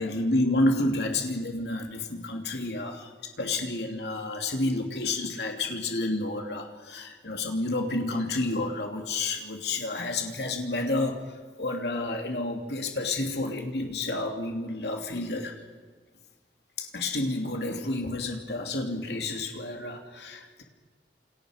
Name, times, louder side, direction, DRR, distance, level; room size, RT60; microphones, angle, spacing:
voice 1, 0.0-3.1 3.4-15.6 16.8-20.6, left 2 dB, 70° left, 3 dB, 2.8 m, -30 dB
28.5 x 28.0 x 5.1 m, 1.5 s
head